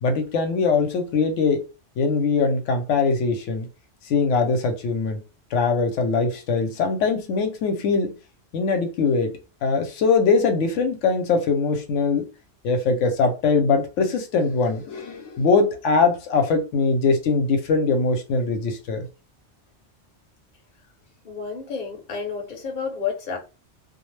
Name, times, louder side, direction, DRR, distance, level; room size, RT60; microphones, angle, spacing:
voice 1, 0.0-1.6 2.0-3.7 4.0-5.2 5.5-8.2 8.5-9.3 9.6-12.3 12.6-19.1, left 4 dB, 85° left, 0.9 m, -22 dB
voice 2, 21.2-23.4, left 6 dB, 45° left, 0.8 m, -30 dB
2.4 x 2.0 x 3.1 m
omnidirectional pair, 1.2 m